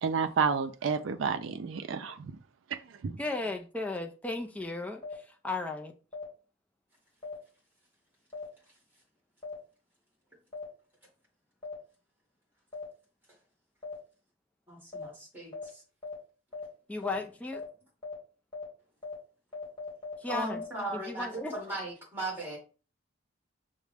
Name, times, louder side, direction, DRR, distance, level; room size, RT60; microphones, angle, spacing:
voice 1, 0.0-2.3 3.0-3.2, right 6 dB, 75° right, 0.4 m, -30 dB
voice 2, 3.2-5.9 16.9-17.6 20.2-20.6 20.9-21.5, left 3 dB, 5° left, 0.4 m, -35 dB
sound 1, 5.0-5.1 6.1-6.2 7.2-7.3 8.3-8.4 9.4-9.5 10.5-10.6 11.6-11.7 12.7-12.8 13.8-13.9 14.9-15.0 15.5-15.6 16.0-16.1 16.5-16.6 17.0-17.1 17.5-17.6 18.0-18.1 18.5-18.6 19.0-19.1 19.5-20.6, left 4 dB, 20° left, 1.4 m, -39 dB
voice 3, 14.7-15.8 20.3-22.6, right 2 dB, 10° right, 1.7 m, -37 dB
5.9 x 2.1 x 3.3 m
head